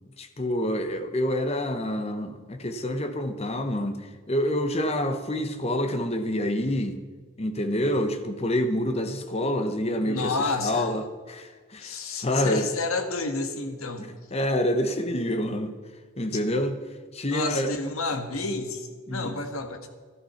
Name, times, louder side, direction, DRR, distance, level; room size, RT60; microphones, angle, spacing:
voice 1, 0.2-4.0 4.3-7.0 7.4-10.3 10.6-12.7 14.0-15.7 16.2-16.7 17.1-17.7 19.1-19.4, left 1 dB, 25° left, 7 dB, 1.0 m, -27 dB
voice 2, 10.0-10.9 11.8-14.0 16.3-16.4 17.3-19.9, left 3 dB, 70° left, 6 dB, 1.6 m, -30 dB
13.0 x 11.0 x 5.8 m, 1.5 s
head